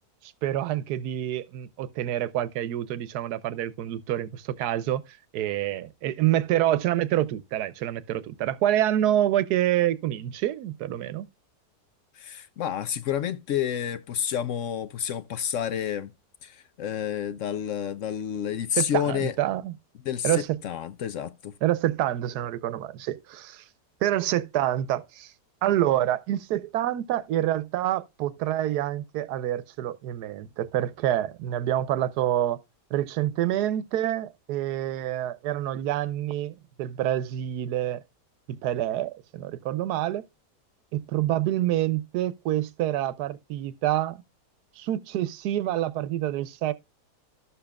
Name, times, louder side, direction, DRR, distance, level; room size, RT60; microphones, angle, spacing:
voice 1, 0.2-5.0 5.3-11.3 18.8-19.7 20.2-20.6 21.6-23.6 24.0-25.3 25.6-32.6 32.9-38.0 38.5-40.2 40.9-44.2 44.8-46.7, right 12 dB, 80° right, 1.2 m, -27 dB
voice 2, 12.2-16.1 16.4-19.3 20.0-21.5, left 9 dB, 65° left, 0.8 m, -30 dB
13.0 x 6.9 x 2.3 m
omnidirectional pair, 1.7 m